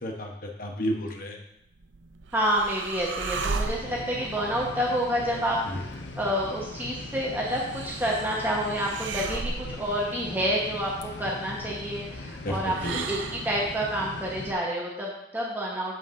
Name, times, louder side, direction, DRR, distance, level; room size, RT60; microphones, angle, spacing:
voice 1, 0.0-1.4 5.7-5.8 12.4-13.0, equal, 50° left, 2 dB, 1.0 m, -32 dB
sound 1, 1.7-13.7, right 4 dB, 85° right, 0.5 m, -38 dB
voice 2, 2.3-5.9 6.2-12.7 13.1-16.0, equal, 10° right, -4 dB, 1.1 m, -28 dB
sound 2, 3.3-14.5, left 2 dB, 70° left, 0.7 m, -40 dB
8.4 x 7.6 x 2.6 m, 0.81 s
head